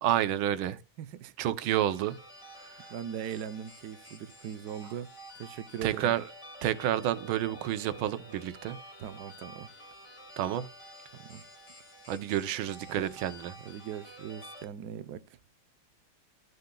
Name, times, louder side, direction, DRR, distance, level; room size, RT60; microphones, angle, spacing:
voice 1, 0.0-0.8 1.4-2.2 5.8-6.2 6.6-8.8 10.4-10.7 12.1-13.5, right 11 dB, 90° right, 1.6 m, -29 dB
voice 2, 1.0-1.3 2.9-5.1 5.4-6.1 9.0-9.7 11.2-11.4 12.9-13.1 13.6-15.2, right 9 dB, 70° right, 1.1 m, -40 dB
sound 1, 1.7-14.7, equal, 15° left, 2.1 m, -50 dB
14.0 x 6.7 x 2.3 m
omnidirectional pair, 2.2 m